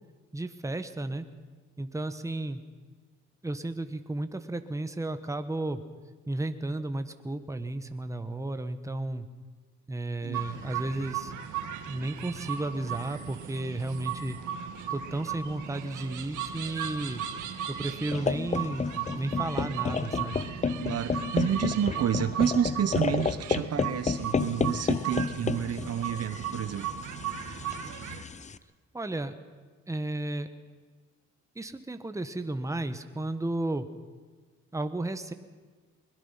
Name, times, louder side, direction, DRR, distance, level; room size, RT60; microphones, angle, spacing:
voice 1, 0.3-1.2 1.8-2.6 3.4-5.8 6.3-9.3 9.9-11.3 11.9-14.4 14.9-17.2 17.7-18.9 19.1-20.4 28.9-29.3 29.9-30.5 31.5-33.9 34.7-35.3, right 2 dB, 10° right, 9 dB, 1.3 m, -33 dB
sound 1, 10.3-28.2, right 9 dB, 85° right, 1.6 m, -37 dB
sound 2, 18.1-28.6, left 5 dB, 25° left, 0.7 m, -31 dB
voice 2, 20.8-26.9, right 9 dB, 55° right, 12 dB, 1.0 m, -29 dB
22.0 x 21.0 x 5.7 m, 1.4 s
cardioid pair, 90°, 30 cm